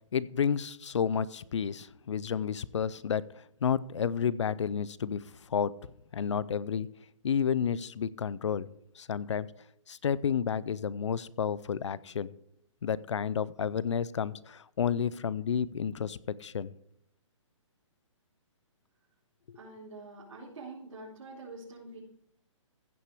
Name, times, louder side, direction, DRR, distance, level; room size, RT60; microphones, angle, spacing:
voice 1, 0.1-5.7 6.1-6.9 7.2-9.5 9.9-12.3 12.8-16.7 19.5-19.6, left 7 dB, 65° left, 20 dB, 0.6 m, -31 dB
voice 2, 19.5-22.0, right 2 dB, 80° right, -9 dB, 4.3 m, -46 dB
15.5 x 5.9 x 4.9 m, 0.72 s
hypercardioid pair, 180°, 17 cm